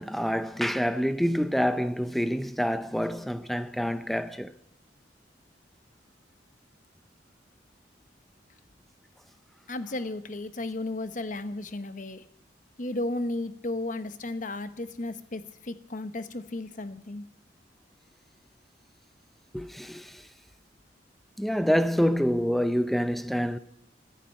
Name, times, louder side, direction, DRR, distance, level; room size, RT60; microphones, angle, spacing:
voice 1, 0.0-4.5 19.5-20.3 21.4-23.6, equal, ahead, 0.6 m, -27 dB
voice 2, 9.7-12.2 12.8-17.2, left 2 dB, 45° left, 0.9 m, -34 dB
14.0 x 10.0 x 8.9 m
head